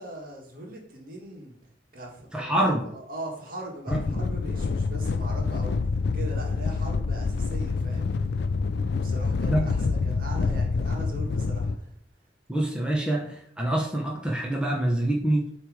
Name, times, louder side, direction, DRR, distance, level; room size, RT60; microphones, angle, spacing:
voice 1, 0.0-1.6 1.9-8.1 8.9-11.9, right 1 dB, 50° right, 0 dB, 1.7 m, -40 dB
voice 2, 2.3-2.8 3.9-4.0 9.5-9.7 12.5-15.5, right 1 dB, 5° right, -2 dB, 0.9 m, -26 dB
sound 1, 3.9-11.8, left 4 dB, 65° left, 0.4 m, -27 dB
7.4 x 3.3 x 4.9 m, 0.69 s
head